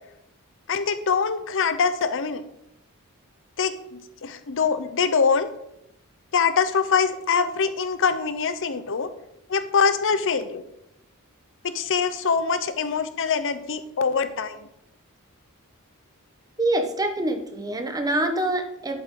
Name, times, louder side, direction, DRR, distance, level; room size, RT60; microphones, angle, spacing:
voice 1, 0.7-2.4 3.6-5.5 6.3-9.1 9.5-10.6 11.6-14.7, left 5 dB, 60° left, 11 dB, 0.7 m, -24 dB
voice 2, 16.6-19.0, right 1 dB, 15° right, 5 dB, 1.1 m, -25 dB
11.0 x 8.4 x 3.8 m, 0.80 s
head